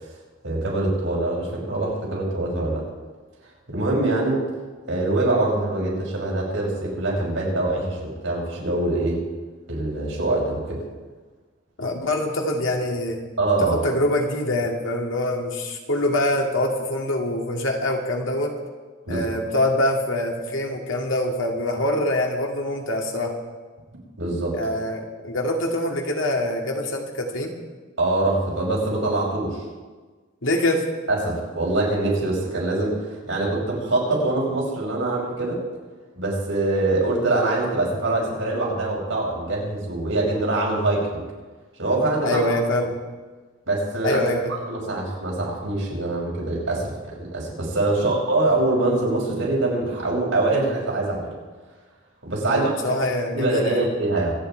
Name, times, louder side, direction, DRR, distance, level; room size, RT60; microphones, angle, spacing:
voice 1, 0.4-2.8 3.7-4.4 4.9-9.2 9.7-10.8 13.4-13.8 19.1-19.2 24.2-24.5 28.0-29.6 31.1-35.6 36.1-41.2 41.8-42.4 43.7-44.2 44.7-51.3 52.2-52.7 53.3-54.4, right 2 dB, 80° right, -3 dB, 5.6 m, -24 dB
voice 2, 11.8-13.2 13.7-18.5 19.1-23.4 24.5-27.5 30.4-30.8 42.2-42.9 44.0-44.5 52.5-53.9, left 1 dB, 85° left, 1 dB, 2.4 m, -24 dB
25.5 x 8.9 x 4.6 m, 1.4 s
head